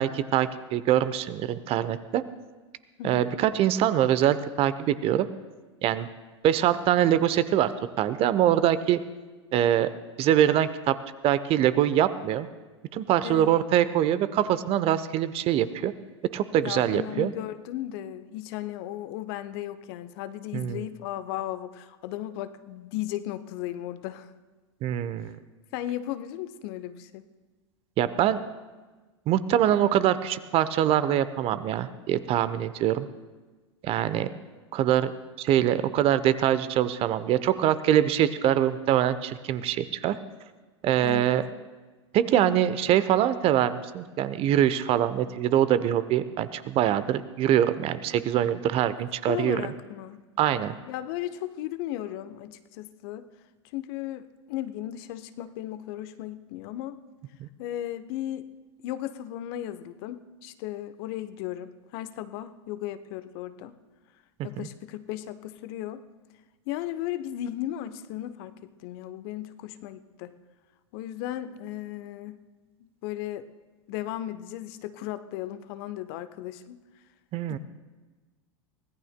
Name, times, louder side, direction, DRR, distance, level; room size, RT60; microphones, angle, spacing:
voice 1, 0.0-2.2 3.0-5.3 5.8-6.1 6.4-7.7 8.0-9.0 9.5-9.9 10.2-11.0 11.2-12.5 12.9-15.9 16.3-17.3 20.5-20.8 24.8-25.3 28.0-28.4 29.3-33.1 33.8-34.3 34.7-35.1 35.4-40.1 40.8-41.4 42.1-49.6 50.4-50.7 57.4-57.5 64.6-64.7 77.3-77.6, right 11 dB, 40° right, 14 dB, 0.8 m, -24 dB
voice 2, 16.6-24.3 25.7-27.3 29.7-29.8 41.0-41.3 42.4-43.0 49.3-50.2 50.9-53.3 53.7-57.0 57.6-58.5 58.8-63.8 64.4-66.0 66.7-70.3 70.9-72.4 72.8-73.5 73.9-76.8 77.5-77.6, left 13 dB, 50° left, 12 dB, 0.8 m, -36 dB
24.0 x 17.5 x 2.2 m, 1.3 s
figure-of-eight pair, 90°, 16 cm